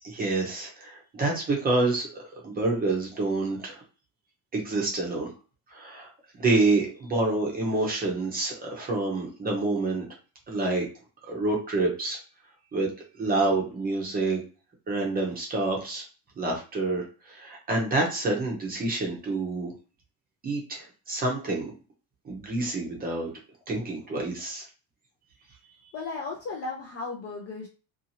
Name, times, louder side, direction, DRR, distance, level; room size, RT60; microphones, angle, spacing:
voice 1, 0.0-3.8 4.5-5.3 5.7-6.1 6.4-10.1 10.5-10.9 11.2-12.2 12.7-12.9 13.2-14.4 14.9-16.0 16.4-19.7 20.4-21.7 22.2-23.3 23.7-24.7, right 2 dB, 20° right, -1 dB, 0.6 m, -27 dB
voice 2, 25.9-27.7, left 3 dB, 35° left, -1 dB, 0.4 m, -35 dB
2.7 x 2.4 x 2.7 m, 0.35 s
cardioid pair, 175°, 46 cm